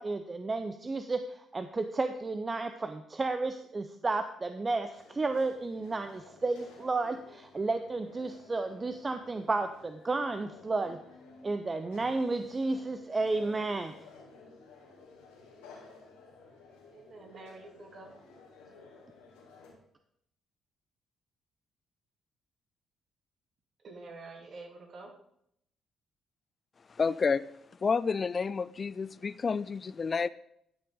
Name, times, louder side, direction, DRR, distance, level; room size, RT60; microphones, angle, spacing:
voice 1, 0.0-11.0 11.4-14.0, right 3 dB, 30° right, 9 dB, 0.6 m, -32 dB
sound 1, 4.9-19.7, left 4 dB, 85° left, 2.4 m, -54 dB
voice 2, 16.9-18.1 23.8-25.1, right 3 dB, 55° right, 2 dB, 2.1 m, -47 dB
voice 3, 26.9-27.4 27.8-30.3, left 5 dB, 40° left, 17 dB, 0.3 m, -29 dB
12.0 x 6.6 x 3.9 m, 0.73 s
hypercardioid pair, 50°, 0 cm